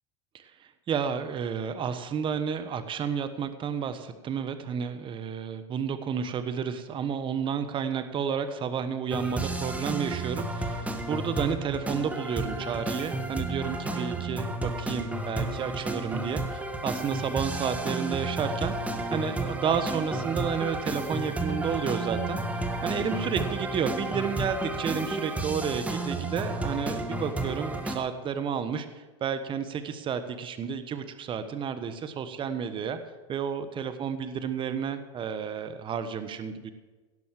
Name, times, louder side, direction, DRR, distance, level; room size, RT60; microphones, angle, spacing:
voice 1, 0.3-18.7 19.1-33.0 33.3-36.7, right 7 dB, 30° right, 10 dB, 1.2 m, -31 dB
sound 1, 9.1-28.0, right 2 dB, 10° right, 1.6 m, -32 dB
17.0 x 6.2 x 7.4 m, 1.2 s
hypercardioid pair, 100°, 16 cm